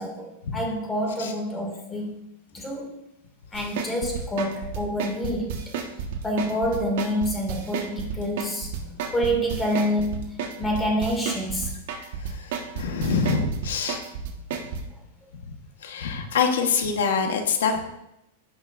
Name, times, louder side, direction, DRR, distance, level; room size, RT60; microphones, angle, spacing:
voice 1, 0.0-2.2 2.5-3.0 3.5-5.6 6.2-11.7, equal, 10° left, 0 dB, 2.4 m, -27 dB
sound 1, 3.5-14.8, right 7 dB, 65° right, 1.6 m, -31 dB
voice 2, 11.9-14.0 15.4-15.5 15.8-17.8, left 5 dB, 90° left, 4 dB, 1.4 m, -26 dB
16.5 x 6.0 x 2.7 m, 0.83 s
supercardioid pair, 140°, 0 cm